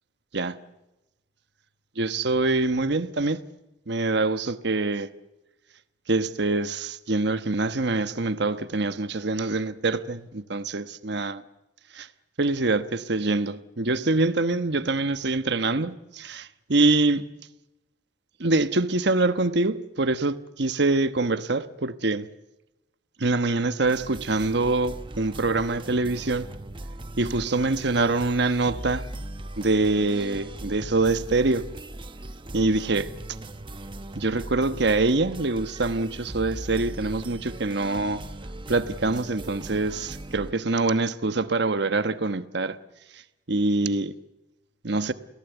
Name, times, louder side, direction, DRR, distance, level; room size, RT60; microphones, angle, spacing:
voice 1, 2.0-3.4 3.9-5.1 6.1-11.4 11.9-12.1 12.4-17.3 18.4-22.3 23.2-26.5 27.2-29.1 29.6-31.6 32.5-33.1 34.2-38.2 38.7-42.8 43.5-44.1 44.8-45.1, right 2 dB, 65° right, 1.2 m, -25 dB
sound 1, 23.8-40.5, right 1 dB, 25° right, 1.0 m, -39 dB
29.5 x 18.0 x 8.2 m
head